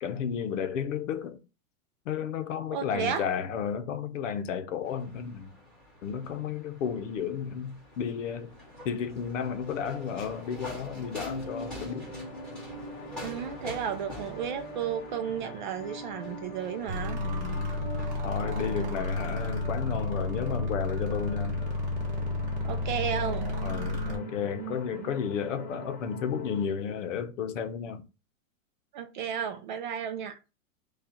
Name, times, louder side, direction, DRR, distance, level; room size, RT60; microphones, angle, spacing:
voice 1, 0.0-1.4 2.1-5.5 6.0-8.6 8.8-12.1 17.2-17.9 18.2-21.6 23.6-28.0, left 7 dB, 65° left, 0.8 m, -33 dB
voice 2, 2.7-3.2 13.2-17.2 18.8-19.0 22.6-23.5 24.7-25.1 28.9-30.4, right 8 dB, 35° right, 0.5 m, -33 dB
sound 1, 4.8-19.5, left 1 dB, ahead, 1.9 m, -46 dB
sound 2, 11.2-26.7, right 1 dB, 25° left, 1.3 m, -43 dB
sound 3, 16.9-24.2, left 2 dB, 20° right, 1.0 m, -32 dB
4.9 x 2.4 x 4.2 m
supercardioid pair, 160°, 41 cm